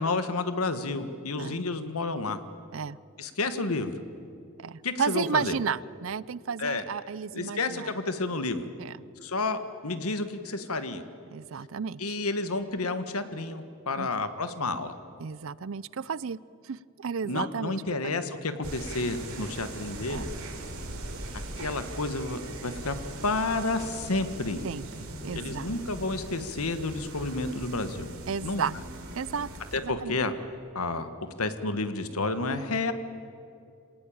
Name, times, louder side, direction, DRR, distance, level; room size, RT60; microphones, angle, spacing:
voice 1, 0.0-2.4 3.2-4.0 4.8-5.6 6.6-6.8 7.3-8.7 9.2-11.0 12.0-14.9 17.2-20.3 21.6-23.0 23.2-24.6 25.3-28.1 28.4-28.6 29.7-30.3 30.7-32.9, left 3 dB, 90° left, 10 dB, 1.6 m, -30 dB
voice 2, 4.6-7.9 8.8-9.0 11.3-12.2 14.0-14.1 15.2-16.4 16.6-18.2 20.1-20.3 24.6-25.7 28.3-28.8 29.1-29.5 29.8-30.2, right 6 dB, 65° right, 21 dB, 0.5 m, -33 dB
sound 1, 18.6-29.8, right 2 dB, 80° right, 3.5 m, -40 dB
26.0 x 18.5 x 8.7 m, 2.5 s
head